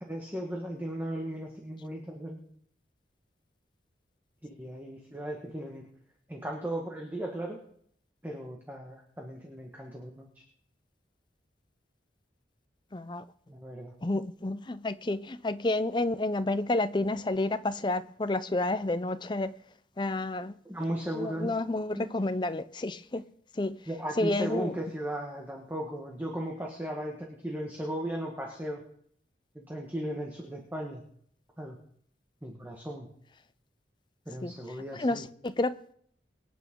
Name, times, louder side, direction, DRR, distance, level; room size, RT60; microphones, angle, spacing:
voice 1, 0.1-2.4 4.4-5.9 6.3-7.6 8.2-10.4 13.5-13.9 20.6-21.6 21.9-22.1 23.9-28.8 29.5-31.0 31.6-31.8 32.4-33.1 34.2-35.2, right 1 dB, 10° right, 1.4 m, -36 dB
voice 2, 12.9-13.2 14.0-19.5 20.0-20.5 21.1-23.2 23.6-23.8 24.2-24.7 34.4-34.5 35.0-35.7, left 2 dB, 25° left, 0.5 m, -30 dB
24.0 x 9.2 x 3.8 m
head